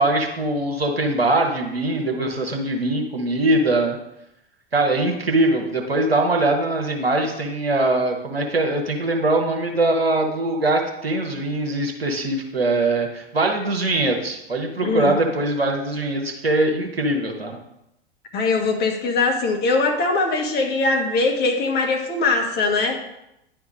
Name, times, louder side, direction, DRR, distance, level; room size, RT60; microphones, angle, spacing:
voice 1, 0.0-4.0 4.7-17.6, right 2 dB, 90° right, 2 dB, 1.2 m, -22 dB
voice 2, 14.8-15.1 18.3-23.0, left 3 dB, 35° left, 3 dB, 1.5 m, -21 dB
10.0 x 3.5 x 5.3 m, 0.85 s
figure-of-eight pair, 85°, 29 cm